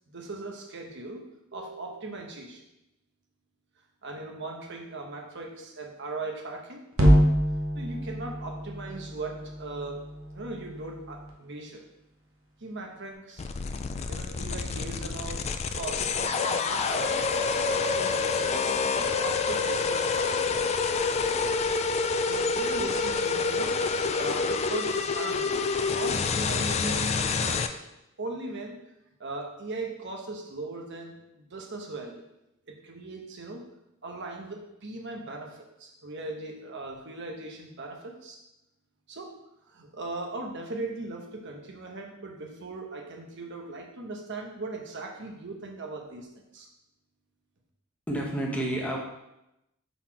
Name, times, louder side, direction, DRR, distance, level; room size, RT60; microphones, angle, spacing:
voice 1, 0.1-1.3 1.5-2.6 4.0-6.8 7.7-10.0 10.3-11.9 12.6-13.5 14.1-15.5 15.7-17.2 17.6-18.7 18.9-20.6 22.0-23.8 24.2-25.6 25.9-27.8 28.2-28.8 29.2-32.2 32.7-33.7 34.0-38.4 39.1-39.4 39.7-46.7, right 2 dB, 55° right, 1 dB, 1.0 m, -39 dB
sound 1, 6.9-11.3, equal, 85° right, 1.1 m, -26 dB
sound 2, 13.4-27.7, left 4 dB, 30° left, 0.3 m, -27 dB
voice 2, 48.1-49.0, right 1 dB, 5° left, -2 dB, 1.0 m, -29 dB
5.8 x 4.1 x 4.6 m, 0.90 s
head